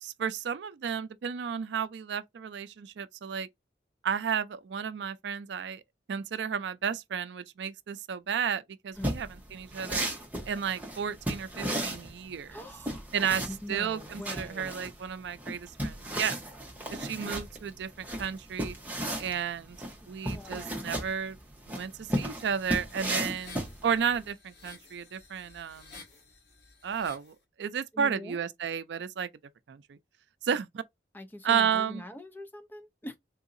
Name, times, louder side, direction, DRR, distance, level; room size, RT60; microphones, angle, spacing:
voice 1, 0.0-3.5 4.0-5.8 6.1-10.1 10.5-12.6 13.1-16.4 16.9-18.8 19.2-19.8 20.1-21.4 21.7-25.9 26.8-29.3 29.7-30.0 30.4-30.8 31.4-32.0, right 7 dB, 75° right, 0.4 m, -32 dB
sound 1, 9.0-24.2, right 1 dB, 10° right, 0.9 m, -35 dB
voice 2, 12.5-13.1 13.5-14.8 20.0-21.0 27.9-28.4 31.1-33.2, left 1 dB, 10° left, 0.5 m, -43 dB
sound 2, 22.1-27.4, left 4 dB, 65° left, 1.3 m, -53 dB
3.8 x 2.7 x 2.5 m
head